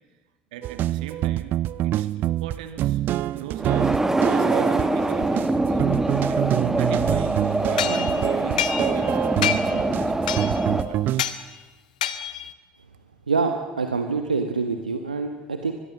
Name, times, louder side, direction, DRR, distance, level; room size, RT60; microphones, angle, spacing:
voice 1, 0.5-3.0 3.3-5.8 6.3-10.6 10.9-11.2, right 9 dB, 70° right, 9 dB, 2.4 m, -39 dB
sound 1, 0.6-11.2, right 14 dB, 50° right, 0.7 m, -26 dB
sound 2, 3.6-10.8, right 2 dB, 10° right, 1.9 m, -24 dB
sound 3, 7.8-9.1 9.4-9.8 10.3-10.7 11.2-11.4 12.0-12.5, left 10 dB, 75° left, 1.3 m, -27 dB
voice 2, 13.3-15.7, right 4 dB, 85° right, 6 dB, 1.3 m, -25 dB
25.0 x 21.5 x 7.4 m, 1.3 s
figure-of-eight pair, 65°, 4 cm